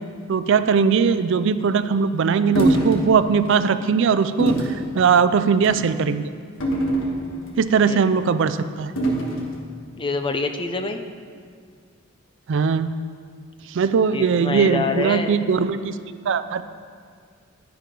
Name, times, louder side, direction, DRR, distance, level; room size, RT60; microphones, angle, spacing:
voice 1, 0.3-6.3 7.6-8.9 12.5-12.9 13.7-16.0 16.3-16.6, right 6 dB, 65° right, 12 dB, 0.4 m, -20 dB
sound 1, 2.5-3.0 3.5-3.6 4.4-4.8 5.5-5.8 6.6-7.5 9.0-9.5, right 1 dB, 75° left, 1.5 m, -22 dB
voice 2, 10.0-11.0 14.1-15.4, left 3 dB, 25° left, 6 dB, 0.5 m, -26 dB
10.0 x 10.0 x 3.8 m, 2.1 s
head